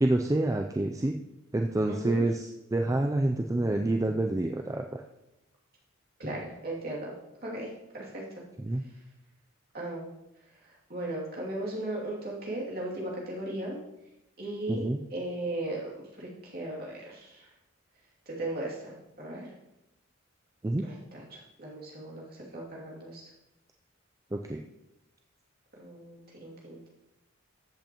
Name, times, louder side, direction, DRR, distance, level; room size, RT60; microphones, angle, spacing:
voice 1, 0.0-1.1 1.5-5.0 8.6-8.8 14.7-15.0 20.6-20.9 24.3-24.6, right 2 dB, 15° right, 4 dB, 0.3 m, -28 dB
voice 2, 1.9-2.2 6.2-7.1 7.4-8.4 9.7-10.1 10.9-13.8 14.4-17.5 18.3-19.5 20.8-23.2 25.8-26.9, right 1 dB, 45° right, -4 dB, 2.6 m, -37 dB
13.5 x 8.0 x 3.0 m, 0.91 s
head